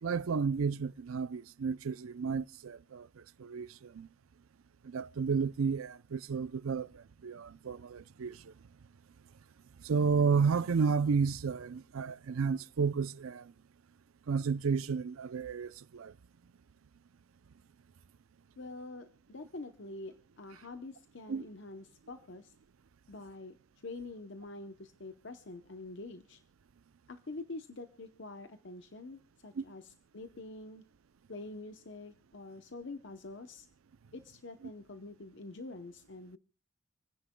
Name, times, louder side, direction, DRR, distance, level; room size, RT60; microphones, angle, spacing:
voice 1, 0.0-4.1 4.8-8.5 9.8-13.5 14.3-16.1 21.3-21.4 29.6-29.7, right 5 dB, 80° right, 0.5 m, -32 dB
voice 2, 18.6-22.5 23.1-26.4 27.1-30.8 31.3-33.7 34.1-36.4, left 2 dB, 60° left, 0.8 m, -46 dB
28.0 x 10.0 x 2.2 m
head